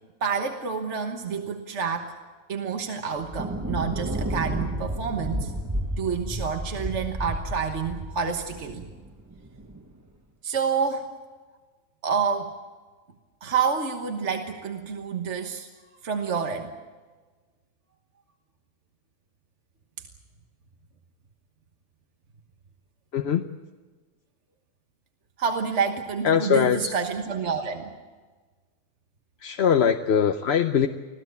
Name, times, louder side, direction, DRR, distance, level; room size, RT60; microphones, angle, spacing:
voice 1, 0.2-2.2 2.5-5.5 6.0-8.9 10.4-11.1 12.0-12.5 13.4-15.7 16.0-16.7 25.4-27.9, right 6 dB, 65° right, 4 dB, 1.6 m, -28 dB
Thunder, 3.2-9.8, right 1 dB, 15° right, 1.3 m, -32 dB
voice 2, 23.1-23.4 26.2-26.9 29.4-30.9, left 7 dB, 60° left, 6 dB, 1.0 m, -21 dB
26.0 x 16.5 x 8.3 m, 1.4 s
omnidirectional pair, 1.3 m